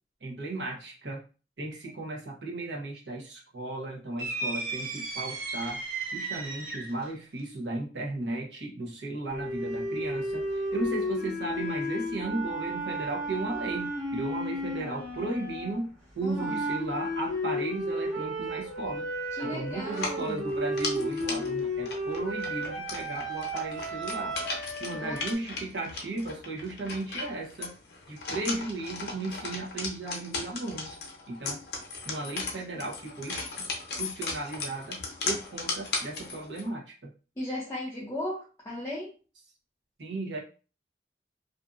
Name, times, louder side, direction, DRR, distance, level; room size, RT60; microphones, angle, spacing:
voice 1, 0.2-1.2 1.6-5.8 6.1-19.1 19.4-24.4 24.8-27.7 28.1-31.0 31.3-31.6 32.0-33.7 34.0-35.0 35.3-37.1 40.0-40.4, right 2 dB, 85° right, -1 dB, 0.8 m, -35 dB
sound 1, 4.2-7.1, right 3 dB, 55° right, 0.5 m, -35 dB
sound 2, 9.3-15.9 16.3-25.3, equal, 15° right, 1.3 m, -33 dB
voice 2, 16.2-16.6 19.4-20.5 24.9-25.4 37.4-39.1, left 1 dB, 15° left, -5 dB, 0.5 m, -36 dB
sound 3, 19.9-36.7, left 4 dB, 65° left, 0.7 m, -37 dB
2.6 x 2.5 x 2.4 m, 0.35 s
head